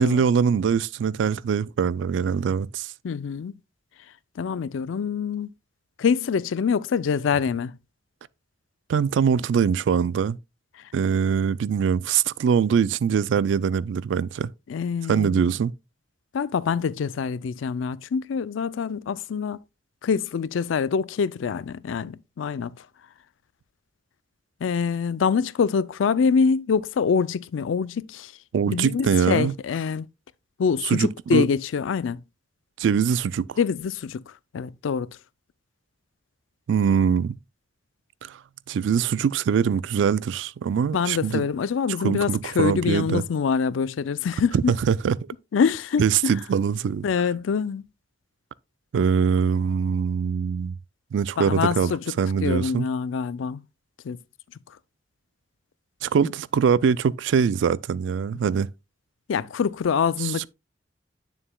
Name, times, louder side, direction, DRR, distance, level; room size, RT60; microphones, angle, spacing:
voice 1, 0.0-2.9 8.9-10.4 10.9-14.5 15.1-15.7 28.5-29.5 30.8-31.5 32.8-33.6 36.7-37.4 38.2-38.4 38.7-41.4 42.0-43.2 44.5-45.2 46.0-47.0 48.9-50.7 51.1-51.9 52.2-52.9 56.0-58.7 60.2-60.5, right 6 dB, 75° right, 0.3 m, -23 dB
voice 2, 3.0-3.6 4.4-5.5 6.0-7.8 14.7-15.5 16.3-19.6 20.0-22.7 24.6-28.3 28.7-30.1 30.6-32.2 33.6-35.1 40.9-44.7 45.5-46.3 47.0-47.8 51.4-52.1 52.4-53.6 54.0-54.2 59.3-60.5, left 6 dB, 90° left, 0.4 m, -25 dB
8.8 x 7.1 x 2.2 m
head